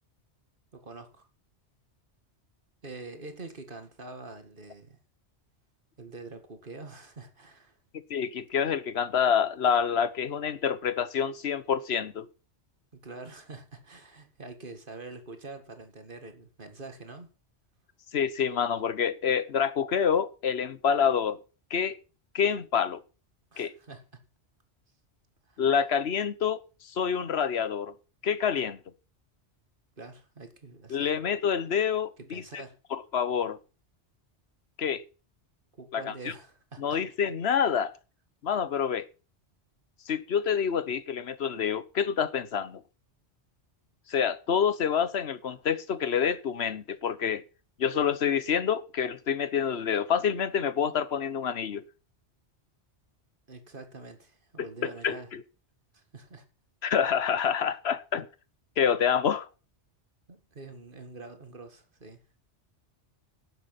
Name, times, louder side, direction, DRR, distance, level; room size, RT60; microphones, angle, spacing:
voice 1, 0.7-1.3 2.8-5.0 6.0-7.8 12.9-17.3 23.5-24.0 25.5-25.6 30.0-31.1 32.3-32.8 35.8-37.0 53.5-55.3 55.9-56.4 60.3-62.2, right 3 dB, 50° right, 2.2 m, -45 dB
voice 2, 8.1-12.3 18.1-21.4 21.7-22.0 22.3-23.0 23.6-23.7 25.6-27.9 28.2-28.8 30.9-32.4 32.9-33.6 34.8-35.0 35.9-36.3 36.8-37.9 38.4-39.0 40.1-42.8 44.1-47.4 47.8-51.8 54.6-55.4 56.8-58.3 58.8-59.5, left 7 dB, 65° left, 1.2 m, -27 dB
12.0 x 9.2 x 5.9 m
omnidirectional pair, 1.2 m